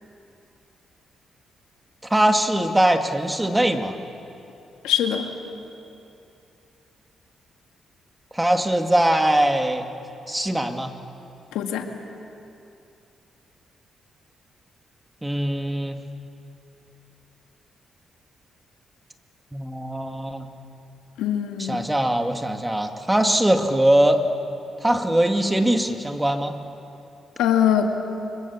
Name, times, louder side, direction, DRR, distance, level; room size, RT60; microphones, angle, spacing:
voice 1, 2.1-4.0 8.3-9.8 10.3-10.9 15.2-16.0 19.5-20.5 21.6-24.2 24.8-26.5, right 1 dB, 15° right, 5 dB, 2.2 m, -21 dB
voice 2, 4.8-5.3 11.5-11.9 21.2-21.8 27.4-27.9, left 9 dB, 90° left, 4 dB, 1.8 m, -22 dB
25.0 x 22.5 x 7.3 m, 2.7 s
supercardioid pair, 55°, 0 cm